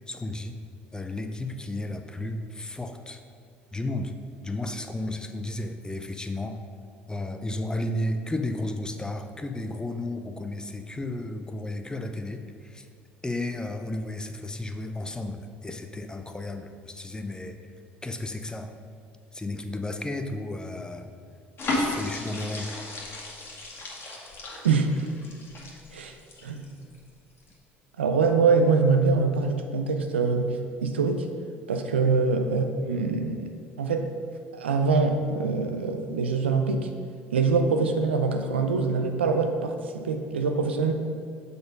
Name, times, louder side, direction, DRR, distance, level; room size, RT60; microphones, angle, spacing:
voice 1, 0.1-0.6 0.9-3.2 3.7-4.1 4.4-6.6 7.1-12.9 13.2-17.6 18.0-18.7 19.3-21.1 21.7-22.7 32.0-32.2, left 1 dB, 15° left, 7 dB, 0.6 m, -33 dB
sound 1, 21.6-27.0 27.4-27.5, left 2 dB, 40° left, 1.6 m, -34 dB
voice 2, 24.6-25.1 25.9-26.1 26.4-26.6 28.0-31.3 31.7-34.1 34.5-36.9 37.3-40.9, right 4 dB, 90° right, 6 dB, 0.5 m, -24 dB
6.7 x 4.2 x 5.2 m, 2.2 s
hypercardioid pair, 65°, 6 cm